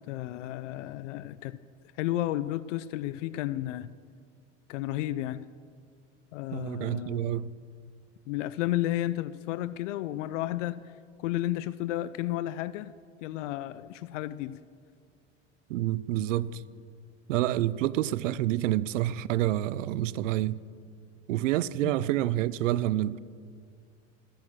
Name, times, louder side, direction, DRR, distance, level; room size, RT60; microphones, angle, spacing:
voice 1, 0.1-1.6 2.0-3.9 4.7-5.4 6.3-7.3 8.3-10.9 11.2-12.9 13.2-14.6 21.8-22.1, left 14 dB, 75° left, 0.5 m, -32 dB
voice 2, 6.5-7.5 15.7-16.6 17.3-20.6 21.3-23.2, right 14 dB, 85° right, 0.5 m, -28 dB
14.0 x 10.0 x 6.1 m
hypercardioid pair, 95°, 37 cm